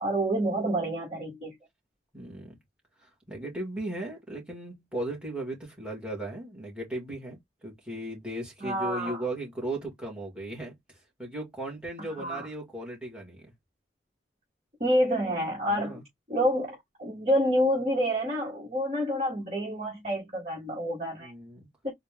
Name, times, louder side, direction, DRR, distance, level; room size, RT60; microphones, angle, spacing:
voice 1, 0.0-1.5 8.6-9.2 12.2-12.5 14.8-16.0 16.3-21.3 21.8-21.9, equal, 35° right, 1.7 m, -28 dB
voice 2, 2.1-2.6 3.0-10.8 11.2-13.5 15.7-16.0 21.2-21.7, right 1 dB, 5° right, 1.8 m, -37 dB
4.0 x 2.5 x 3.5 m
head